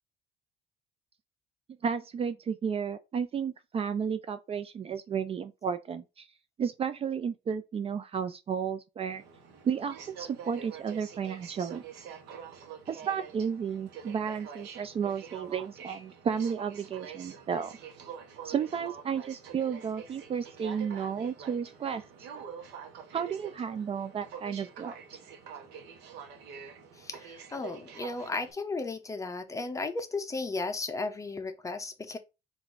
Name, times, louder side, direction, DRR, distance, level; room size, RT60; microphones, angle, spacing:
voice 1, 1.8-6.3 6.6-9.2 9.6-11.8 12.9-17.7 18.4-22.0 23.1-25.0, right 7 dB, 35° right, 0.4 m, -32 dB
Aircraft, 9.1-28.5, right 7 dB, 85° right, 1.0 m, -46 dB
voice 2, 27.0-32.2, left 3 dB, 20° left, 0.7 m, -35 dB
3.9 x 2.6 x 4.5 m
cardioid pair, 110°, 17 cm